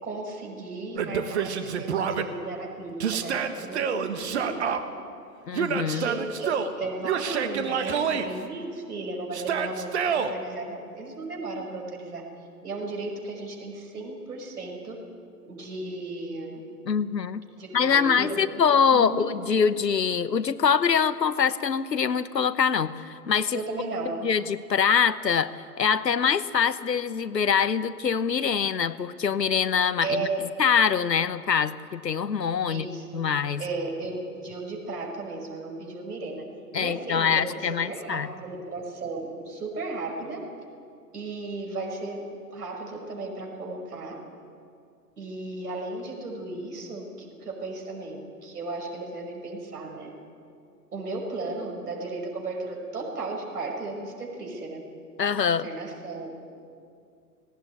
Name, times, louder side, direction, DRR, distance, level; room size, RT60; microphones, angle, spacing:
voice 1, 0.0-4.8 5.9-12.2 12.6-15.0 15.5-16.6 17.6-19.3 23.5-24.2 30.0-30.4 32.7-33.2 33.6-36.4 36.7-40.4 41.1-42.2 42.5-44.2 45.2-50.1 50.9-54.8 55.6-56.5, right 3 dB, 65° right, 0 dB, 5.7 m, -35 dB
Yell, 1.0-2.2 3.0-4.8 5.5-6.7 7.0-8.3 9.3-10.3, right 7 dB, 40° right, 1.4 m, -27 dB
voice 2, 5.5-6.0 16.9-17.4 17.7-23.6 24.2-25.5 25.8-30.3 30.6-32.9 33.1-33.6 36.7-38.3 55.2-55.7, left 6 dB, 75° left, 15 dB, 1.1 m, -24 dB
18.0 x 18.0 x 9.5 m, 2.4 s
figure-of-eight pair, 125°, 50 cm